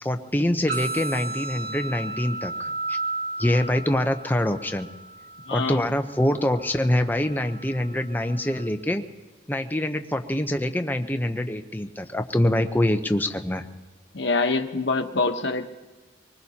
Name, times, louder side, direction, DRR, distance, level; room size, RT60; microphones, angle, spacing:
voice 1, 0.0-3.0 3.4-4.9 5.5-9.0 9.5-13.7, left 1 dB, 10° left, 6 dB, 0.7 m, -25 dB
sound 1, 0.7-8.7, right 2 dB, 55° right, 5.1 m, -35 dB
voice 2, 5.5-5.8 14.1-15.7, left 3 dB, 75° left, 6 dB, 1.1 m, -25 dB
24.5 x 20.0 x 2.9 m, 1.2 s
head